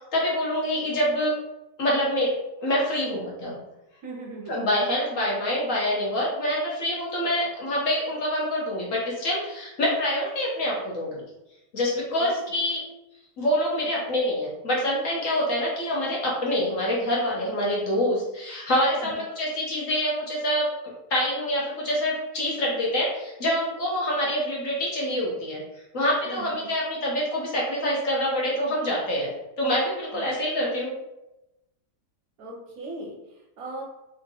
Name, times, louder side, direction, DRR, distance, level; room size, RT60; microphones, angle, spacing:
voice 1, 0.1-1.3 1.8-2.3 2.6-3.5 4.5-11.2 11.7-12.8 13.4-20.7 21.1-25.6 25.9-30.9, equal, 55° left, -4 dB, 1.1 m, -26 dB
voice 2, 4.0-4.6 12.2-12.3 19.0-19.2 26.3-26.7 30.1-30.4 32.4-33.8, right 2 dB, 70° right, 0 dB, 1.0 m, -39 dB
3.4 x 2.8 x 2.7 m, 0.95 s
omnidirectional pair, 1.8 m